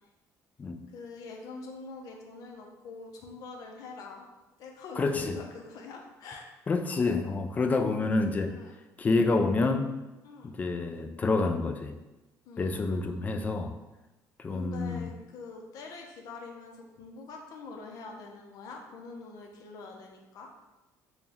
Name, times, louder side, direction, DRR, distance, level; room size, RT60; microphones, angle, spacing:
voice 1, 0.9-4.3 4.6-6.4 8.5-8.7 10.2-10.6 12.4-13.4 14.5-20.5, left 3 dB, 65° left, 1 dB, 0.7 m, -45 dB
voice 2, 5.0-5.3 6.7-8.5 9.0-9.9 10.4-11.9 12.6-13.7 14.4-15.1, left 3 dB, 25° left, 6 dB, 0.3 m, -28 dB
4.2 x 2.3 x 3.5 m, 1.0 s
cardioid pair, 135°, 7 cm